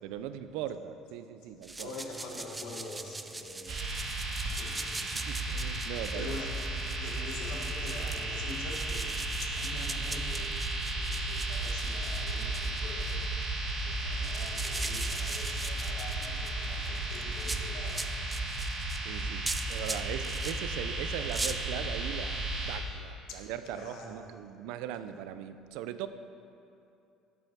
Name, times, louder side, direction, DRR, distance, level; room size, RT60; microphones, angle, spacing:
voice 1, 0.0-1.9 5.1-6.3 19.0-19.4 19.7-26.1, right 10 dB, 80° right, 11 dB, 0.4 m, -39 dB
sound 1, 1.6-20.6 21.1-21.5, right 3 dB, 10° right, 0.3 m, -41 dB
voice 2, 1.7-5.3 6.1-6.5 7.0-10.6 10.9-13.4 13.8-18.1 20.0-20.3 23.3-24.3, left 2 dB, 65° left, 0 dB, 1.4 m, -45 dB
sound 2, 3.7-22.8, right 2 dB, 50° right, 1.7 m, -34 dB
10.0 x 5.5 x 6.0 m, 2.7 s
cardioid pair, 160°, 0 cm